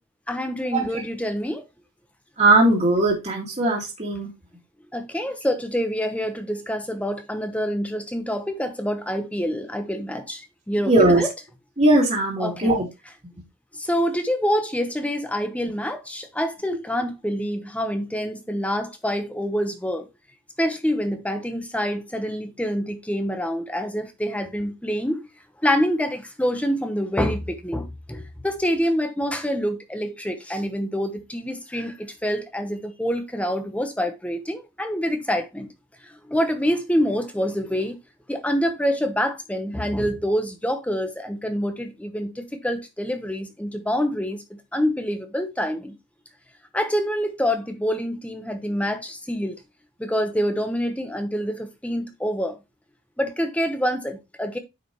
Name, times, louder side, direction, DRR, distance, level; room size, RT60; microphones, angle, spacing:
voice 1, 0.3-1.6 4.9-11.3 12.4-12.7 13.7-20.1 20.6-25.3 25.6-35.7 36.1-37.9 38.3-46.0 46.7-49.6 50.0-52.6 53.2-54.6, equal, 5° left, 1.0 m, -26 dB
voice 2, 2.4-4.3 10.9-11.2 11.8-12.9, right 2 dB, 35° right, 2.1 m, -19 dB
9.4 x 5.0 x 3.0 m
head